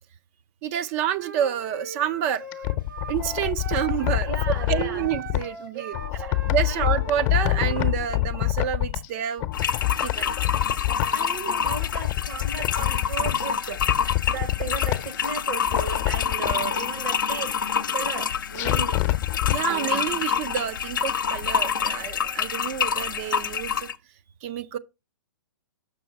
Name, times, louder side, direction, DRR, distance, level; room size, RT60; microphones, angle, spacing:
voice 1, 0.6-2.4 3.1-5.9 6.5-9.5 9.9-10.3 19.5-23.9 24.4-24.8, right 9 dB, 40° right, 0.5 m, -28 dB
Wind instrument woodwind instrument, 1.2-4.3 4.5-7.9, right 4 dB, 85° right, 1.6 m, -40 dB
sound 1, 2.3-5.5 5.9-9.1 9.4-11.3 11.6-13.4 13.8-15.3 15.6-16.6 18.5-19.6 19.9-20.0, left 18 dB, 40° left, 0.8 m, -26 dB
voice 2, 4.3-5.1 5.7-5.8 6.1-6.4 6.7-6.9 11.1-13.8 14.3-17.5 17.9-19.0 19.7-20.1, right 6 dB, 55° right, 1.2 m, -35 dB
sound 2, 9.5-24.0, left 7 dB, 75° left, 0.7 m, -27 dB
6.1 x 6.1 x 4.5 m
hypercardioid pair, 120°, 11 cm